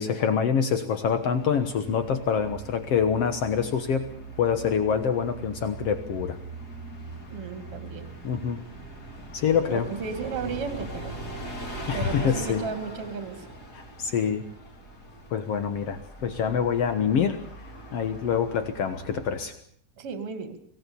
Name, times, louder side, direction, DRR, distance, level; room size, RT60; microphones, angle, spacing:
voice 1, 0.0-4.0 4.4-6.4 8.2-8.6 9.3-9.9 11.9-12.6 13.7-14.4 15.3-17.4 17.9-19.5, left 7 dB, 85° left, 9 dB, 1.3 m, -26 dB
Bus, 1.0-19.6, right 2 dB, 25° left, 3.5 m, -41 dB
voice 2, 7.3-8.1 9.6-11.2 11.9-13.4 20.0-20.6, right 5 dB, 40° right, 8 dB, 2.8 m, -34 dB
24.5 x 18.5 x 7.0 m, 0.63 s
omnidirectional pair, 4.8 m